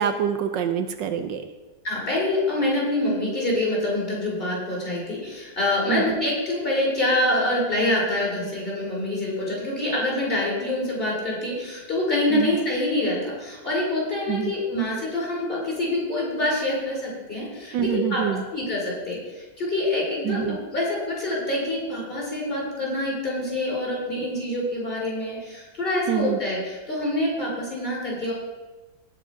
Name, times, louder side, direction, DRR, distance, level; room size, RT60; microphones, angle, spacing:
voice 1, 0.0-1.4 5.9-6.2 12.3-12.5 14.3-14.5 17.7-18.4 20.2-20.6 26.1-26.4, right 9 dB, 75° right, 8 dB, 1.4 m, -25 dB
voice 2, 1.8-28.3, left 1 dB, 30° left, -4 dB, 5.3 m, -26 dB
18.5 x 6.5 x 5.2 m, 1.2 s
omnidirectional pair, 2.0 m